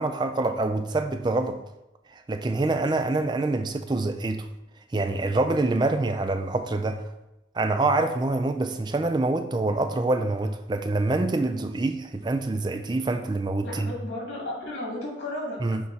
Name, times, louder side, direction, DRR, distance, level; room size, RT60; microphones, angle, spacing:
voice 1, 0.0-1.6 2.1-4.5 4.9-7.0 7.5-13.9 15.6-15.8, right 2 dB, 25° right, 7 dB, 0.3 m, -26 dB
voice 2, 13.6-15.8, left 1 dB, 90° left, -3 dB, 2.3 m, -34 dB
6.4 x 3.0 x 5.4 m, 0.95 s
head